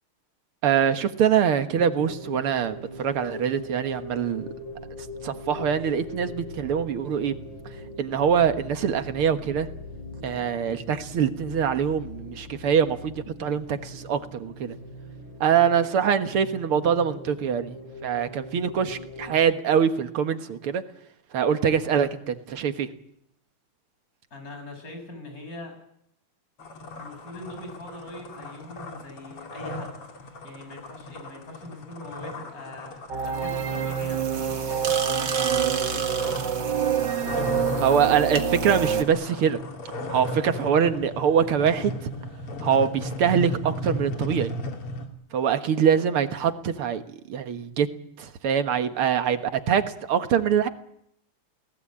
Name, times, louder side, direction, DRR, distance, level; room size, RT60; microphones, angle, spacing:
voice 1, 0.6-4.5 5.2-7.3 8.0-9.7 10.2-14.7 15.4-17.8 18.0-20.8 21.3-22.9 37.8-39.6 40.1-42.1 42.6-44.5 45.3-47.9 48.2-49.4 49.7-50.7, right 8 dB, 80° right, 9 dB, 2.3 m, -24 dB
sound 1, 1.7-19.4, left 1 dB, 60° left, 8.6 m, -41 dB
voice 2, 24.3-25.7 26.9-30.0 30.4-36.1, left 2 dB, 40° left, 5 dB, 7.7 m, -42 dB
sound 2, 26.6-45.1, left 1 dB, 90° left, 3.7 m, -36 dB
sound 3, 33.1-39.0, right 7 dB, 55° right, 2.4 m, -26 dB
30.0 x 18.5 x 8.7 m, 0.76 s
omnidirectional pair, 2.4 m